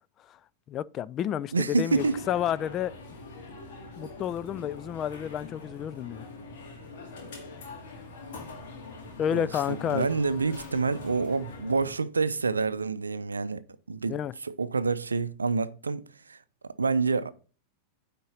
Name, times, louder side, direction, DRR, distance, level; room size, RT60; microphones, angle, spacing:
voice 1, 0.7-2.9 4.0-6.3 9.2-10.1 14.1-14.3, left 10 dB, 30° left, 0.3 m, -30 dB
voice 2, 1.5-2.2 9.3-16.4 16.8-17.3, right 4 dB, 75° right, 0.5 m, -28 dB
sound 1, 1.9-11.9, left 3 dB, 55° left, 2.1 m, -43 dB
9.3 x 3.8 x 5.7 m
figure-of-eight pair, 90°, 0 cm